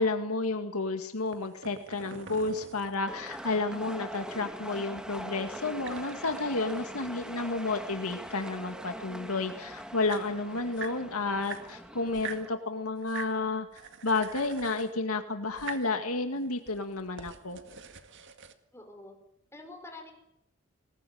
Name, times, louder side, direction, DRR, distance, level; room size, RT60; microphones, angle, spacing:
voice 1, 0.0-13.7 14.0-17.6, left 3 dB, 85° left, 6 dB, 2.1 m, -31 dB
sound 1, 1.2-3.6 5.5-7.6 7.8-9.1 9.6-9.7 9.9-11.0 11.4-12.5 13.0-13.4 13.7-15.0 15.5-15.9 16.4-18.5, right 6 dB, 60° right, 1.9 m, -45 dB
sound 2, 3.1-12.5, equal, 5° right, 1.5 m, -42 dB
voice 2, 18.7-19.1 19.5-20.1, left 2 dB, 10° left, 4 dB, 4.8 m, -46 dB
19.5 x 19.5 x 9.5 m, 0.77 s
head